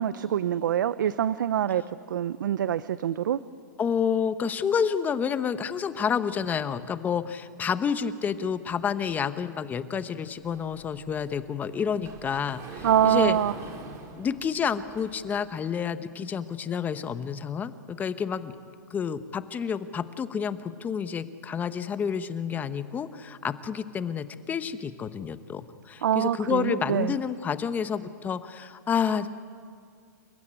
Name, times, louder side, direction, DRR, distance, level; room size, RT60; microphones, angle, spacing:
voice 1, 0.0-1.8 2.1-3.4 12.8-13.5 26.0-27.1, right 10 dB, 80° right, 16 dB, 0.6 m, -25 dB
voice 2, 3.8-13.4 14.2-18.5 18.9-29.3, left 7 dB, 15° left, 12 dB, 0.9 m, -29 dB
Sliding door, 10.5-15.4, right 3 dB, 30° right, 3.5 m, -44 dB
28.0 x 15.5 x 9.9 m, 2.2 s
hypercardioid pair, 145°, 10 cm